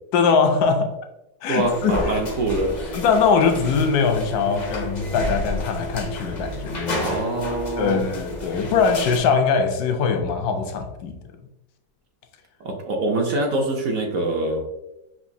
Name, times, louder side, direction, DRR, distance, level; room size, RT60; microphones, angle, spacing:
voice 1, 0.1-1.0 1.4-2.2 2.9-7.2 7.8-11.2, left 5 dB, 75° left, 1.1 m, -21 dB
voice 2, 1.5-2.8 7.0-8.1 12.6-14.6, right 2 dB, 65° right, 1.0 m, -24 dB
sound 1, 1.6-9.2, left 1 dB, 45° left, 0.6 m, -31 dB
5.9 x 2.6 x 2.6 m
omnidirectional pair, 1.8 m